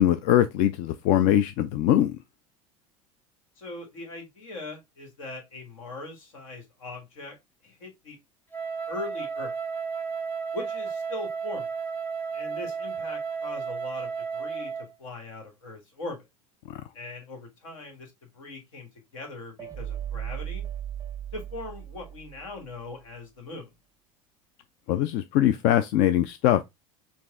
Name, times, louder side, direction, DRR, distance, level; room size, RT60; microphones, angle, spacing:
voice 1, 0.0-2.2 16.7-16.8 24.9-26.6, left 12 dB, 50° left, 0.4 m, -22 dB
voice 2, 3.6-7.4 7.6-8.2 8.9-9.5 10.5-11.7 12.3-14.7 15.0-16.2 16.9-20.6 21.3-23.7, left 2 dB, 70° left, 1.7 m, -40 dB
Wind instrument woodwind instrument, 8.5-14.9, right 5 dB, 10° left, 0.9 m, -33 dB
sound 1, 19.6-22.8, right 10 dB, 20° right, 0.4 m, -36 dB
4.6 x 2.4 x 3.5 m
figure-of-eight pair, 75°, 18 cm